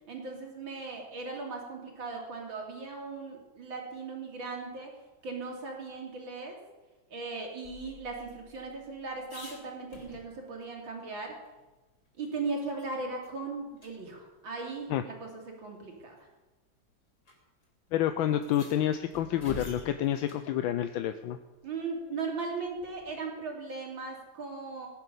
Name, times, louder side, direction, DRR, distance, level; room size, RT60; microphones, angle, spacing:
voice 1, 0.1-4.9 5.2-6.6 7.1-11.4 12.2-16.3 21.6-24.9, right 4 dB, 80° right, 0 dB, 3.8 m, -38 dB
sound 1, 7.6-10.6 11.0-11.1 11.4-12.9 13.2-13.4 13.8-13.9 15.0-15.1 16.0-16.2 17.2-17.4 17.6-17.7 18.3-20.5 22.8-23.2, left 2 dB, 50° left, 3.9 m, -49 dB
voice 2, 17.9-21.4, left 11 dB, 85° left, 9 dB, 1.5 m, -29 dB
18.0 x 11.0 x 6.9 m, 1.1 s
omnidirectional pair, 2.1 m